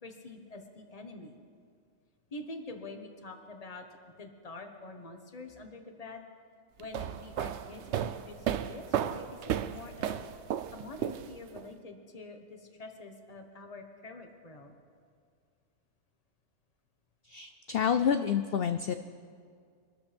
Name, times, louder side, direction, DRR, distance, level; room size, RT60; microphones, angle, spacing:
voice 1, 0.0-1.3 2.3-3.9 4.2-6.2 6.8-9.4 9.7-10.3 10.7-14.7, left 2 dB, 30° left, 4 dB, 1.3 m, -46 dB
sound 1, 6.8-11.6, right 10 dB, 65° right, 0.8 m, -34 dB
voice 2, 17.3-18.9, left 8 dB, 60° left, 9 dB, 0.6 m, -28 dB
24.5 x 13.0 x 3.5 m, 2.2 s
omnidirectional pair, 1.4 m